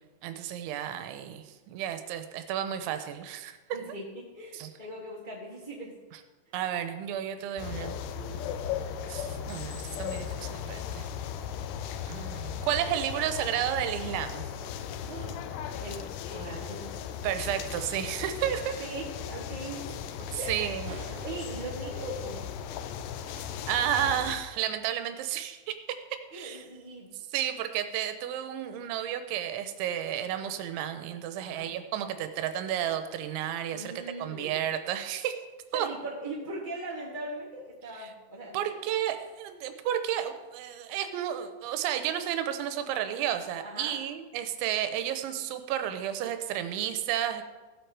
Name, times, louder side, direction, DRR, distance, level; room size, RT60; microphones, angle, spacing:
voice 1, 0.2-3.6 4.5-4.7 6.5-8.0 9.1-11.1 12.1-14.4 17.2-18.7 20.3-20.9 23.3-25.7 26.3-26.7 27.3-35.3 35.7-35.9 38.0-38.1 38.5-47.5, right 10 dB, 90° right, 8 dB, 3.1 m, -32 dB
voice 2, 3.7-5.9 8.1-8.4 12.4-12.5 15.1-15.4 15.8-17.0 18.8-19.9 20.3-20.8 21.1-22.4 26.3-27.1 31.4-31.7 33.7-34.6 35.7-38.6 43.6-43.9, right 1 dB, 20° left, -7 dB, 1.5 m, -40 dB
sound 1, 7.6-24.4, left 8 dB, 90° left, 2.4 m, -37 dB
sound 2, 20.8-23.4, right 2 dB, 45° right, 2.5 m, -48 dB
16.0 x 7.9 x 4.7 m, 1.2 s
omnidirectional pair, 5.4 m